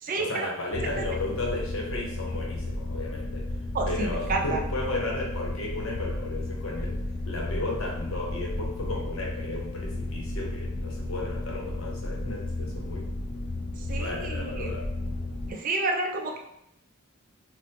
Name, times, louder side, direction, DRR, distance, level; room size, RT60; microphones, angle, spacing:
voice 1, 0.2-3.5 3.9-7.0 7.2-13.1 13.8-14.9, left 2 dB, 75° left, -1 dB, 0.8 m, -34 dB
sound 1, 0.7-15.5, left 2 dB, 50° left, 0.4 m, -33 dB
voice 2, 3.7-4.6 13.9-14.7 15.5-16.4, right 3 dB, 40° right, 2 dB, 0.4 m, -30 dB
4.2 x 2.1 x 2.6 m, 0.81 s
head